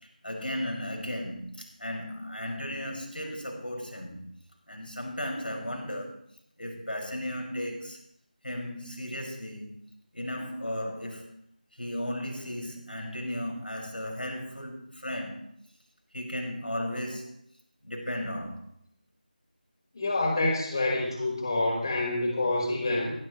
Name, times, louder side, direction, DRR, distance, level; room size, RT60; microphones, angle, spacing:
voice 1, 0.2-4.2 4.7-6.2 6.6-8.0 8.4-9.8 10.1-11.3 11.8-15.5 16.1-17.3 17.8-18.6, equal, 90° left, 6.0 m, -35 dB
voice 2, 19.9-23.1, left 2 dB, 30° left, 4.6 m, -27 dB
18.0 x 15.5 x 3.2 m
figure-of-eight pair, 165°, 5 cm